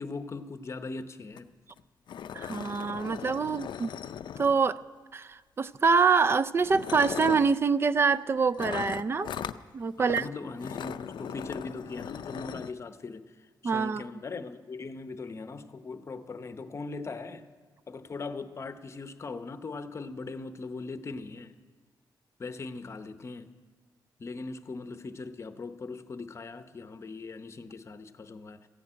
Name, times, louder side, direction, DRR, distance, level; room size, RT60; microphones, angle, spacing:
voice 1, 0.0-1.5 10.0-13.3 13.6-17.5 17.9-21.5 22.4-23.6 24.2-28.7, left 3 dB, 35° left, 0.8 m, -40 dB
sound 1, 1.4-1.5 1.7-1.8 2.1-4.8 5.8-6.0 6.6-7.6 8.6-9.6 10.1-10.3 10.6-12.7, left 8 dB, 75° left, 0.4 m, -38 dB
voice 2, 2.3-3.9 4.4-4.8 5.1-9.3 9.7-10.3 13.6-14.0, right 5 dB, 30° right, 0.4 m, -25 dB
14.5 x 10.5 x 8.8 m
wide cardioid pair, 155°, 8 cm